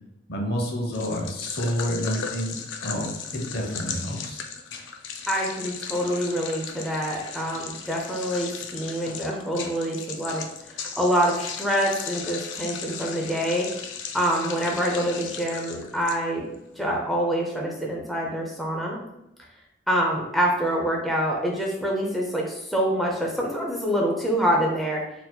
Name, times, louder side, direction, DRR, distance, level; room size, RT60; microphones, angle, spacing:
voice 1, 0.3-4.4, equal, 60° left, 0 dB, 0.8 m, -29 dB
sound 1, 0.9-16.5, left 6 dB, 75° left, 0.4 m, -36 dB
voice 2, 5.3-13.7 14.1-16.5 16.7-19.0 19.9-25.0, equal, ahead, -2 dB, 0.5 m, -26 dB
4.1 x 2.7 x 2.2 m, 0.85 s
head